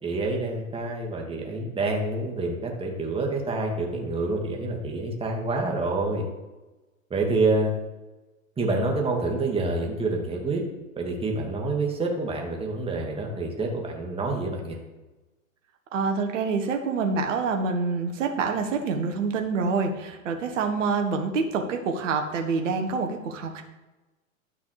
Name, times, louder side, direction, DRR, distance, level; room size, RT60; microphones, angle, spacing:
voice 1, 0.0-6.2 7.1-7.7 8.6-10.6 11.0-14.8, right 2 dB, 15° right, 0 dB, 2.5 m, -27 dB
voice 2, 15.9-23.6, right 4 dB, 60° right, 4 dB, 1.8 m, -26 dB
12.0 x 6.0 x 5.0 m, 1.1 s
figure-of-eight pair, 100°, 42 cm